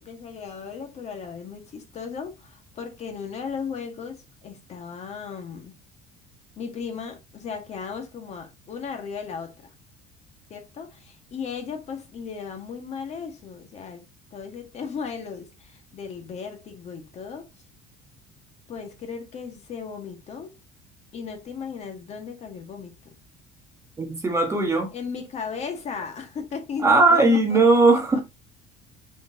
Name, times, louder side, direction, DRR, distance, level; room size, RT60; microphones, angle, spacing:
voice 1, 0.0-5.7 6.6-9.7 10.5-14.0 14.3-17.5 18.7-20.5 21.1-22.9 24.9-27.6 27.9-28.0, left 6 dB, 35° left, 1.9 m, -36 dB
voice 2, 24.0-24.9 26.8-28.2, right 2 dB, 15° right, 1.5 m, -18 dB
6.8 x 6.5 x 2.9 m
cardioid pair, 170°, 20 cm